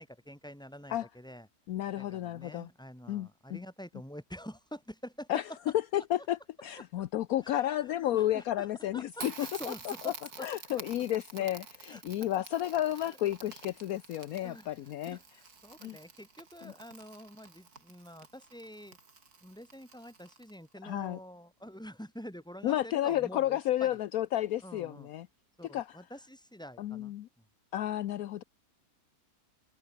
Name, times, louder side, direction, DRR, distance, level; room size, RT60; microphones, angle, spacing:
voice 1, 0.0-1.5 2.0-5.3 7.4-7.6 8.1-8.7 8.9-10.8 11.9-12.0 12.9-13.2 14.4-14.7 15.1-19.0 19.4-24.0 24.6-25.1 25.6-27.1, equal, 5° left, 5.0 m, -47 dB
voice 2, 1.7-2.7 3.1-3.6 5.3-5.4 5.9-10.1 10.4-15.2 15.8-16.0 16.6-16.7 20.8-21.2 22.6-25.3 25.7-26.0 26.8-27.3 27.7-28.4, left 13 dB, 70° left, 1.1 m, -32 dB
Crackle, 9.1-20.7, right 4 dB, 75° right, 3.4 m, -49 dB
omnidirectional pair, 1.6 m